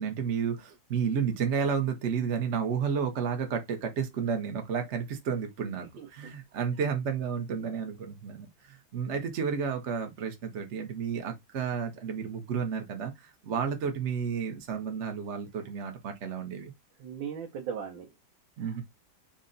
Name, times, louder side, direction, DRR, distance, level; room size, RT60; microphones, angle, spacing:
voice 1, 0.0-16.7 18.6-18.8, right 6 dB, 55° right, 0.8 m, -31 dB
voice 2, 6.0-6.3 17.0-18.1 18.6-18.8, right 7 dB, 80° right, 1.6 m, -38 dB
4.0 x 2.2 x 3.7 m
omnidirectional pair, 2.1 m